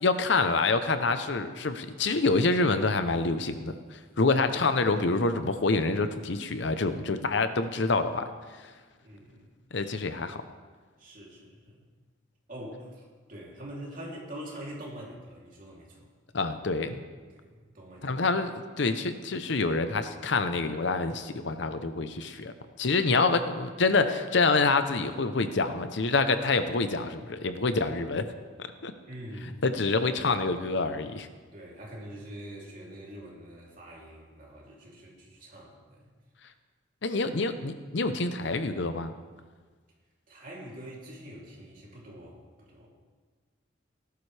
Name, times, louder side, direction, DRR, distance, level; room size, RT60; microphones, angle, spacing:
voice 1, 0.0-8.2 9.7-10.4 16.3-17.0 18.0-22.5 22.8-28.2 28.8-28.9 29.6-31.3 37.0-39.1, left 3 dB, 60° left, 9 dB, 0.7 m, -27 dB
voice 2, 9.0-9.5 11.0-11.8 12.5-16.1 17.3-18.1 29.1-29.6 31.5-36.1 40.3-42.9, right 1 dB, 45° right, -4 dB, 3.1 m, -44 dB
18.0 x 11.5 x 3.4 m, 1.5 s
head